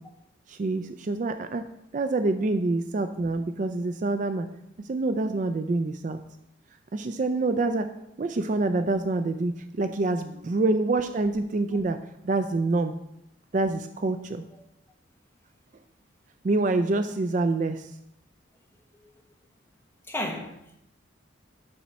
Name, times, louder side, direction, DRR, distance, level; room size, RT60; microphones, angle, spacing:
voice 1, 0.5-1.7 1.9-4.5 4.9-6.2 6.9-7.9 8.2-12.0 12.2-12.9 13.5-14.4 16.4-17.9, right 2 dB, 40° right, 8 dB, 0.4 m, -26 dB
voice 2, 20.1-20.8, left 1 dB, 10° left, 0 dB, 1.1 m, -34 dB
7.1 x 4.3 x 6.1 m, 0.79 s
head